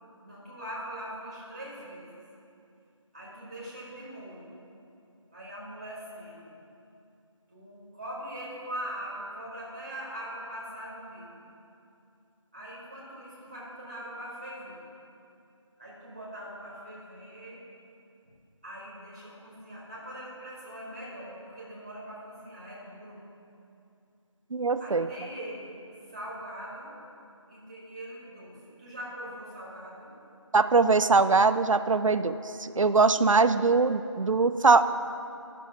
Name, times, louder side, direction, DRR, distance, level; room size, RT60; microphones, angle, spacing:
voice 1, 0.2-2.2 3.1-4.5 5.3-6.6 7.5-11.5 12.5-14.8 15.8-17.6 18.2-18.3 18.6-23.2 24.8-25.7 26.1-26.9 27.5-30.1, right 1 dB, 15° right, -7 dB, 1.6 m, -41 dB
voice 2, 24.5-25.1 30.5-34.8, right 4 dB, 80° right, 12 dB, 0.5 m, -22 dB
12.5 x 6.2 x 5.6 m, 2.6 s
figure-of-eight pair, 180°, 16 cm